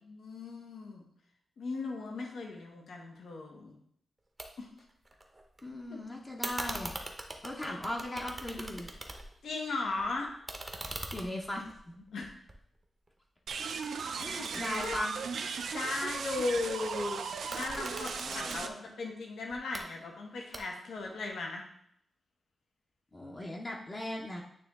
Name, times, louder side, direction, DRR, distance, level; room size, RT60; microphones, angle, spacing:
voice 1, 0.1-1.0 1.6-3.7 4.6-4.7 5.9-6.0 7.7-7.8 9.4-10.3 12.1-12.3 14.4-15.0 15.7-17.2 17.5-21.6, left 3 dB, 85° left, 1 dB, 1.0 m, -37 dB
sound 1, 4.4-4.5 4.8-5.6 6.4-9.5 9.8-13.1 13.5-15.7 17.3-18.6 19.5-19.8 20.5-21.0, right 1 dB, 20° right, 0.7 m, -42 dB
voice 2, 5.6-7.0 7.4-8.9 11.1-12.0 14.2-15.1 18.2-18.8 23.1-24.4, left 1 dB, 25° left, -1 dB, 0.7 m, -38 dB
sound 2, 13.5-18.7, right 5 dB, 75° right, 0.4 m, -37 dB
8.9 x 3.0 x 3.6 m, 0.70 s
wide cardioid pair, 155°, 0 cm